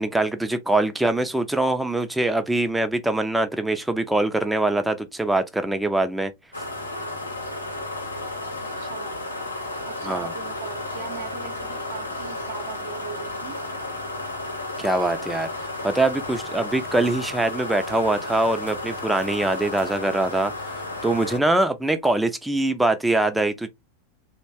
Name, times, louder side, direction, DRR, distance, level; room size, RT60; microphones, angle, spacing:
voice 1, 0.0-6.3 10.0-10.3 14.8-15.5 15.8-23.7, right 2 dB, 5° right, 0.5 m, -23 dB
sound 1, 6.5-21.4, left 2 dB, 85° left, 0.7 m, -33 dB
voice 2, 8.6-9.1 9.8-13.6, right 7 dB, 60° right, 0.7 m, -39 dB
2.9 x 2.1 x 2.7 m
figure-of-eight pair, 85°, 0 cm